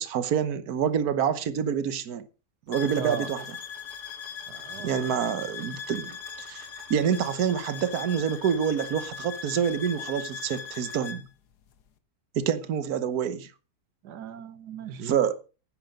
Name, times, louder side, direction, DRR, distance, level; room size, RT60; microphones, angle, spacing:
voice 1, 0.0-2.3 2.7-3.4 4.8-6.2 6.5-11.3 12.3-13.5 15.0-15.4, right 8 dB, 70° right, 1.5 m, -27 dB
sound 1, 2.7-11.2, left 6 dB, 80° left, 1.6 m, -39 dB
voice 2, 3.0-3.3 4.5-5.2 14.0-15.2, right 7 dB, 90° right, 1.6 m, -38 dB
11.0 x 9.7 x 5.3 m
omnidirectional pair, 1.7 m